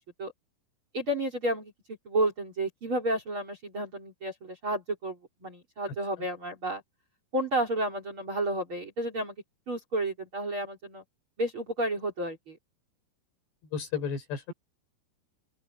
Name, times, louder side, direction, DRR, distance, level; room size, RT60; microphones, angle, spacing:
voice 1, 0.9-6.8 7.3-9.3 9.7-11.0 11.4-12.6, right 1 dB, 30° right, 4.2 m, -31 dB
voice 2, 13.7-14.5, left 6 dB, 60° left, 7.0 m, -32 dB
open air
omnidirectional pair, 5.6 m